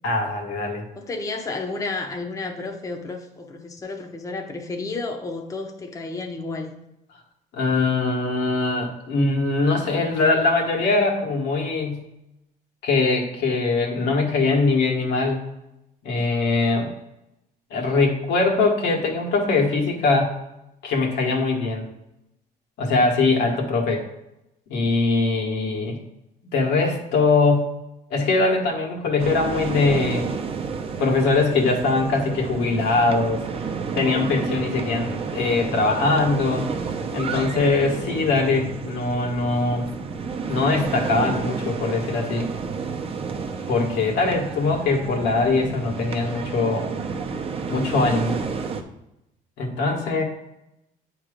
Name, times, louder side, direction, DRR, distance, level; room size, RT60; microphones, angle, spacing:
voice 1, 0.0-0.8 7.5-12.0 12.8-15.4 16.0-16.9 17.7-20.4 20.8-21.9 22.8-24.0 24.7-26.0 26.5-27.7 28.1-30.3 31.0-33.4 33.9-36.7 37.1-39.9 40.5-42.5 43.7-46.9 47.7-48.4 49.6-50.2, left 3 dB, 80° left, 1 dB, 1.4 m, -22 dB
voice 2, 0.9-6.7 50.0-50.2, left 3 dB, 20° left, 2 dB, 0.7 m, -32 dB
sound 1, 29.2-48.8, right 5 dB, 35° right, 0.7 m, -30 dB
8.6 x 3.0 x 5.0 m, 0.88 s
cardioid pair, 110°, 17 cm